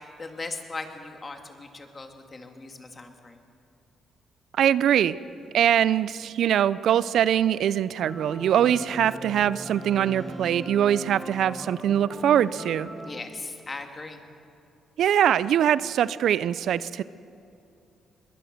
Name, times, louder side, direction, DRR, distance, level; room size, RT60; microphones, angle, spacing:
voice 1, 0.2-3.4 5.5-5.6 13.1-14.2, left 3 dB, 30° left, 5 dB, 2.2 m, -38 dB
voice 2, 4.5-5.2 5.5-12.9 15.0-17.0, right 10 dB, 70° right, 17 dB, 0.4 m, -22 dB
sound 1, 8.0-13.2, right 1 dB, 5° right, 1.6 m, -39 dB
22.0 x 19.0 x 6.6 m, 2.7 s
cardioid pair, 90°, 0 cm